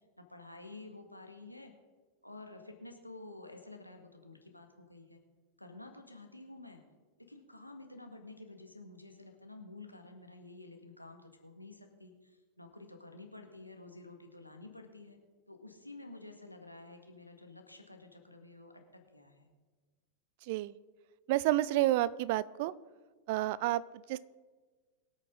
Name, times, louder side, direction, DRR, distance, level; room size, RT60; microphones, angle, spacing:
voice 1, 0.2-1.7 2.2-5.2 5.6-6.8 7.2-15.2 15.5-19.5, left 2 dB, 85° left, 4 dB, 1.7 m, -51 dB
voice 2, 21.3-22.7 23.3-24.2, right 15 dB, 50° right, 19 dB, 0.5 m, -30 dB
22.0 x 8.5 x 3.9 m, 1.4 s
figure-of-eight pair, 90°, 0 cm